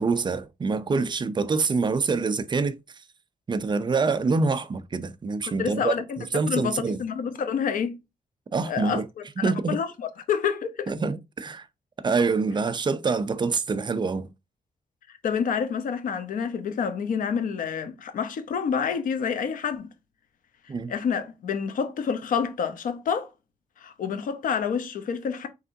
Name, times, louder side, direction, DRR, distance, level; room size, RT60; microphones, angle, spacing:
voice 1, 0.0-2.8 3.5-5.9 6.3-7.0 8.5-9.0 9.4-9.8 10.9-11.6 12.0-14.3 20.7-20.9, right 4 dB, 35° right, 0.5 m, -25 dB
voice 2, 5.4-6.2 6.5-8.0 8.7-10.9 15.1-19.9 20.6-23.3 23.8-25.5, left 6 dB, 90° left, 0.9 m, -28 dB
4.7 x 3.6 x 2.7 m
wide cardioid pair, 125°, 13 cm